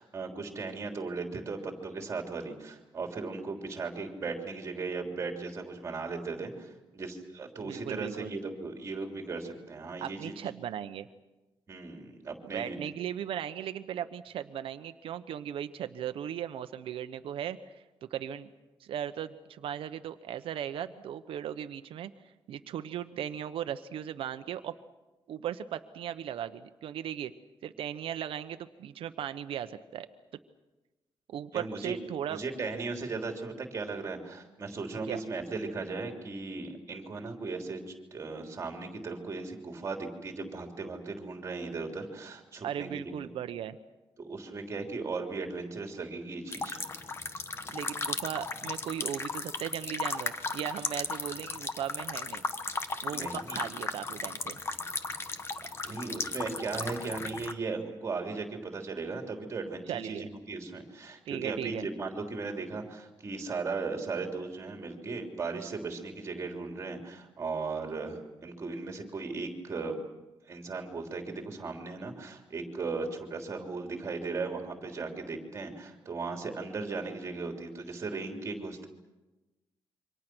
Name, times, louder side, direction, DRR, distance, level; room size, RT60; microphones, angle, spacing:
voice 1, 0.0-10.4 11.7-12.8 31.5-32.0 32.3-43.0 44.2-46.8 53.1-53.6 55.6-70.0 70.5-78.9, right 4 dB, 30° right, 4 dB, 3.4 m, -37 dB
voice 2, 7.6-8.3 10.0-11.1 12.5-18.5 18.8-22.1 22.5-24.7 25.3-27.3 27.6-30.1 31.3-32.4 35.1-35.2 42.6-43.8 47.7-52.4 53.0-54.6 59.9-60.3 61.3-61.9, right 10 dB, 75° right, 10 dB, 1.0 m, -37 dB
sound 1, 46.5-57.5, left 4 dB, 25° left, 1.1 m, -36 dB
27.5 x 24.5 x 6.2 m, 1.1 s
wide cardioid pair, 175°, 9 cm